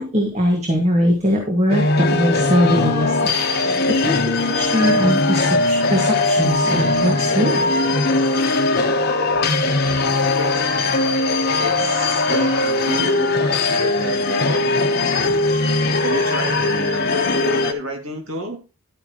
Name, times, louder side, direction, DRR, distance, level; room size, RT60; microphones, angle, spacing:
voice 1, 0.0-7.7, equal, 30° right, 1.8 m, -21 dB
sound 1, 1.7-17.7, left 2 dB, 45° left, 1.0 m, -19 dB
voice 2, 10.4-11.2 11.6-15.4 16.0-18.6, equal, 70° right, 2.4 m, -30 dB
11.5 x 9.0 x 3.0 m
head